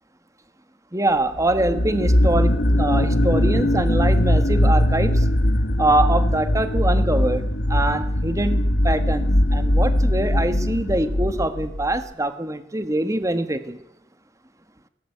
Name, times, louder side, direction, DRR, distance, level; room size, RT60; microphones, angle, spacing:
voice 1, 0.9-5.3 5.8-13.8, right 1 dB, 15° right, 10 dB, 1.6 m, -24 dB
sound 1, 1.4-12.0, left 1 dB, 60° left, 1.9 m, -20 dB
22.0 x 18.0 x 9.3 m, 0.83 s
head